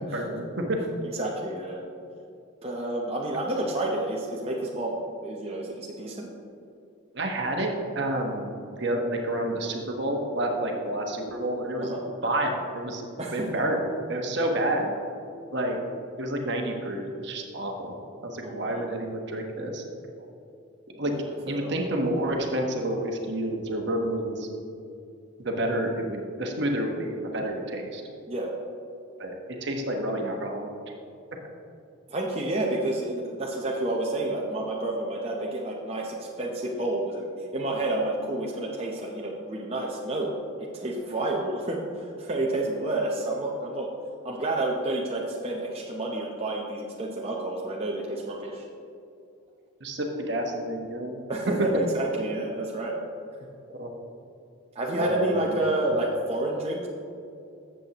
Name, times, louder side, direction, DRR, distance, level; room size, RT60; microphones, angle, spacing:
voice 1, 0.1-0.8 7.1-11.9 12.2-13.0 13.3-13.8 14.1-14.9 15.5-15.8 16.2-17.9 18.2-19.8 20.9-21.1 21.5-24.5 25.4-28.0 29.2-29.3 29.6-30.7 49.8-51.2 53.7-53.9 54.9-55.6, right 1 dB, 55° right, 2 dB, 1.1 m, -29 dB
voice 2, 1.1-1.8 2.6-4.9 5.2-6.3 11.8-12.0 13.2-13.5 18.4-18.9 21.3-21.7 28.3-28.5 32.1-40.3 40.6-43.9 44.2-48.7 51.3-53.0 54.7-56.9, right 2 dB, 30° right, -2 dB, 0.7 m, -29 dB
13.0 x 7.7 x 2.9 m, 2.6 s
head